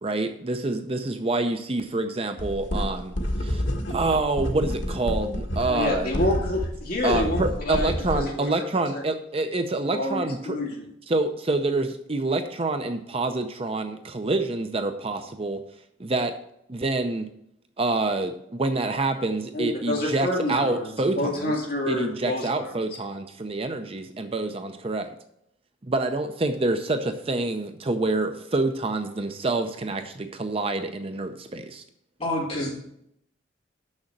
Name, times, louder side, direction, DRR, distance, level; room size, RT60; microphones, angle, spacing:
voice 1, 0.0-3.1 3.4-3.6 3.9-6.1 7.0-10.6 11.1-15.6 16.0-16.3 16.7-17.3 17.8-21.5 21.9-25.1 25.8-31.8, right 2 dB, 30° right, 7 dB, 0.6 m, -27 dB
sound 1, 2.4-8.2, equal, 85° left, 1.3 m, -29 dB
voice 2, 5.6-8.5 8.9-9.0 9.9-10.8 19.5-22.7, left 1 dB, 55° left, -2 dB, 2.3 m, -28 dB
voice 3, 32.2-32.7, left 1 dB, 35° left, -4 dB, 3.1 m, -27 dB
6.5 x 6.4 x 7.2 m, 0.74 s
head